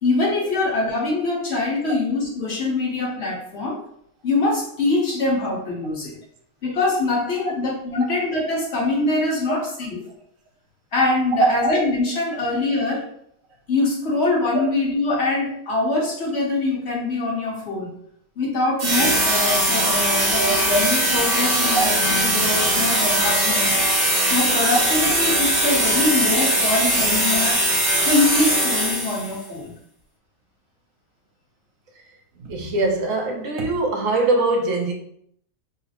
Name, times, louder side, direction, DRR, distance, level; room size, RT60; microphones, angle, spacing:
voice 1, 0.0-3.8 4.2-6.1 6.6-10.0 10.9-13.1 13.7-17.9 18.4-23.7 24.3-27.6 28.0-29.7, left 2 dB, 50° left, 1.3 m, -23 dB
sound 1, 18.8-29.4, right 1 dB, 40° right, 0.7 m, -20 dB
voice 2, 32.4-34.9, right 3 dB, 70° right, 1.1 m, -22 dB
3.8 x 2.1 x 4.2 m
omnidirectional pair, 1.5 m